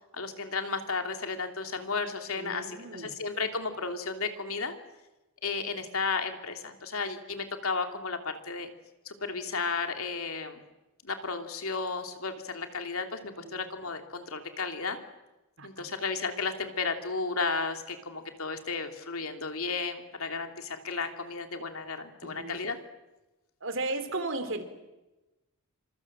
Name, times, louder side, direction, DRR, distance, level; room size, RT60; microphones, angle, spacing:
voice 1, 0.1-4.7 5.4-8.7 9.1-10.6 11.0-15.0 15.6-22.8, left 4 dB, 70° left, 5 dB, 3.0 m, -33 dB
voice 2, 2.3-3.1 13.4-13.6 15.6-15.9 22.2-22.6 23.6-24.6, right 2 dB, 55° right, 9 dB, 3.5 m, -35 dB
28.0 x 26.0 x 7.7 m, 1.1 s
head